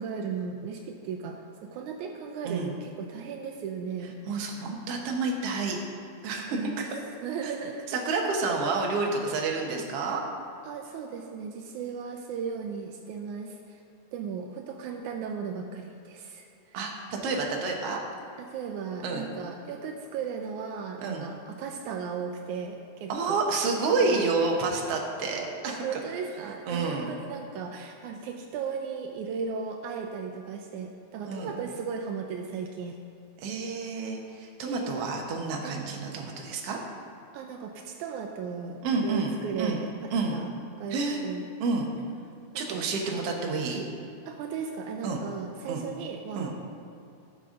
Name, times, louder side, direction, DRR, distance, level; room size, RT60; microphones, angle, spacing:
voice 1, 0.0-1.4 1.7-4.5 6.5-6.9 7.2-8.0 9.6-9.9 10.7-13.8 14.1-16.8 18.4-23.4 25.7-33.0 34.6-35.1 35.6-35.8 37.3-39.9 40.3-40.5 40.8-41.5 42.5-42.8 43.1-43.2 44.3-46.5, right 6 dB, 80° right, 3 dB, 2.0 m, -36 dB
voice 2, 4.3-5.8 6.2-6.9 7.4-7.5 7.9-10.2 16.7-18.0 19.0-19.3 21.0-21.3 23.1-26.0 26.7-27.1 31.3-31.5 33.4-36.8 38.8-39.8 40.1-40.4 40.9-41.2 41.6-41.9 42.5-43.8 45.0-45.2 45.7-45.8 46.4-46.5, right 3 dB, 60° right, 0 dB, 1.9 m, -29 dB
16.0 x 6.8 x 3.8 m, 2.7 s
omnidirectional pair, 3.5 m